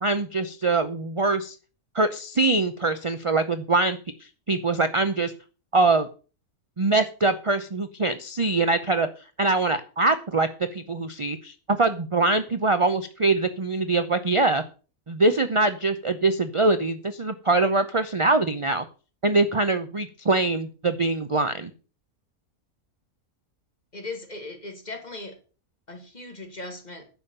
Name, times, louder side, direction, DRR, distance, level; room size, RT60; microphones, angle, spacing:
voice 1, 0.0-1.6 1.9-4.0 4.5-5.3 5.7-6.1 6.8-9.1 9.4-14.6 15.1-18.8 19.2-21.7, right 3 dB, 30° right, 0.6 m, -23 dB
voice 2, 23.9-25.4 25.9-27.1, left 2 dB, 30° left, 2.3 m, -38 dB
10.5 x 7.1 x 6.8 m
omnidirectional pair, 1.5 m